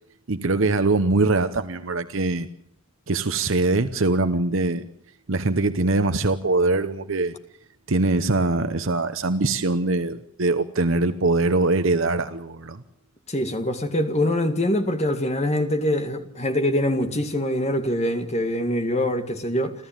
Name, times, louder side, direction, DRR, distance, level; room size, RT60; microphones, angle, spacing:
voice 1, 0.3-2.5 3.1-4.8 5.3-7.3 7.9-12.8, right 2 dB, 60° right, 0.9 m, -22 dB
voice 2, 13.3-19.7, left 1 dB, 30° left, 2.0 m, -24 dB
29.5 x 13.5 x 9.1 m
head